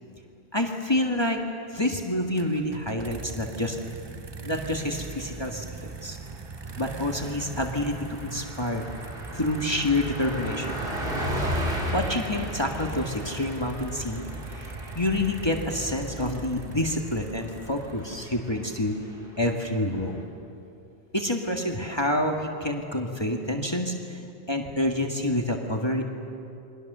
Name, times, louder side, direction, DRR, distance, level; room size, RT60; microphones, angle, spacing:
voice 1, 0.5-1.4 1.7-3.8 4.4-6.2 6.8-7.9 8.2-8.8 9.3-10.8 11.9-19.0 19.4-20.2 21.1-26.0, left 1 dB, 25° left, 2 dB, 1.7 m, -28 dB
sound 1, 2.4-18.3, right 4 dB, 30° right, 0.7 m, -40 dB
Car passing by, 4.8-5.2 5.5-5.7 6.0-20.2, equal, 60° right, 3.6 m, -36 dB
29.0 x 22.5 x 6.8 m, 2.6 s
omnidirectional pair, 1.1 m